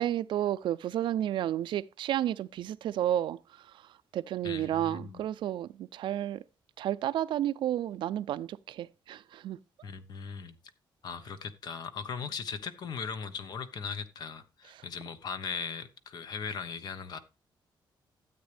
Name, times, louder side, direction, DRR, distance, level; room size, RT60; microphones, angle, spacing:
voice 1, 0.0-6.4 6.8-9.9 14.7-14.9, right 11 dB, 70° right, 0.4 m, -32 dB
voice 2, 4.4-5.2 9.8-10.5 11.0-17.2, left 6 dB, 55° left, 1.1 m, -38 dB
13.0 x 8.2 x 3.4 m
cardioid pair, 160°, 8 cm